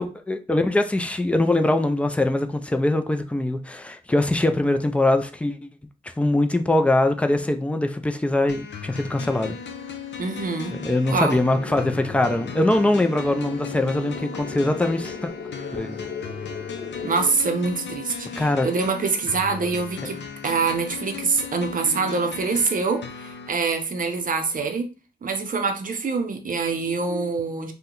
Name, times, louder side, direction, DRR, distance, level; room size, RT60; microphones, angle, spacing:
voice 1, 0.0-5.7 6.2-9.6 10.8-15.3 15.7-16.1 18.4-18.7, left 1 dB, 5° left, 0.3 m, -22 dB
sound 1, 8.5-23.5, left 6 dB, 70° left, 0.5 m, -37 dB
voice 2, 10.2-10.8 11.1-11.4 17.0-20.2 20.4-24.9 25.2-27.7, right 4 dB, 45° right, 0.6 m, -25 dB
sound 2, 11.5-17.3, left 5 dB, 45° left, 0.9 m, -36 dB
2.7 x 2.1 x 3.7 m
wide cardioid pair, 135°, 19 cm